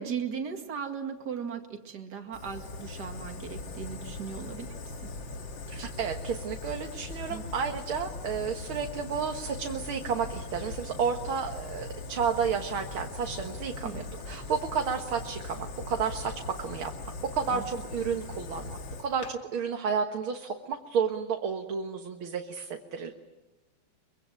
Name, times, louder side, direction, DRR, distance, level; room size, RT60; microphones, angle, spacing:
voice 1, 0.0-5.1 7.3-7.4 13.8-14.1 17.5-17.6, right 7 dB, 55° right, 4 dB, 2.7 m, -37 dB
Fire, 2.3-19.3, left 3 dB, 65° left, 2.6 m, -40 dB
voice 2, 5.7-16.3 16.6-16.9 17.3-23.1, right 6 dB, 90° right, 4 dB, 2.3 m, -31 dB
24.0 x 24.0 x 9.0 m, 1.0 s
omnidirectional pair, 2.2 m